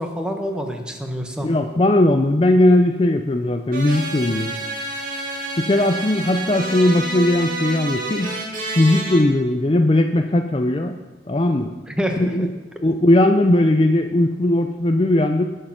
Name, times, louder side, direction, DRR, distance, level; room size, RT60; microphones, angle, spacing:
voice 1, 0.0-1.5 11.9-12.5, equal, 5° right, 3 dB, 1.2 m, -27 dB
voice 2, 1.4-4.6 5.6-8.3 8.8-11.0 11.3-11.7 12.2-12.5 12.8-15.4, left 1 dB, 30° left, 6 dB, 0.5 m, -18 dB
sound 1, 3.7-9.2, right 2 dB, 45° right, 2.2 m, -29 dB
19.0 x 6.6 x 5.9 m, 1.2 s
head